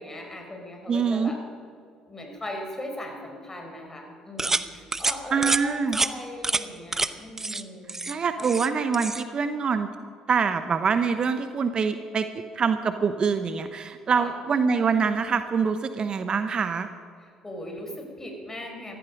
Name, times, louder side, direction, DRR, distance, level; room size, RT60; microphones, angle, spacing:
voice 1, 0.0-1.4 2.1-8.5 14.1-14.3 17.2-19.0, left 1 dB, 20° left, 2 dB, 4.7 m, -39 dB
voice 2, 0.9-1.3 5.3-6.0 8.1-9.9 10.3-12.3 12.5-16.9, right 5 dB, 45° right, 10 dB, 0.9 m, -25 dB
sound 1, 4.4-4.6 4.9-5.1 5.4-5.6 5.9-6.1 6.4-6.6 6.9-7.1 7.4-7.6 7.9-8.7 8.9-9.2, right 3 dB, 20° right, 0.8 m, -26 dB
16.0 x 14.0 x 5.3 m, 2.2 s
hypercardioid pair, 55°, 2 cm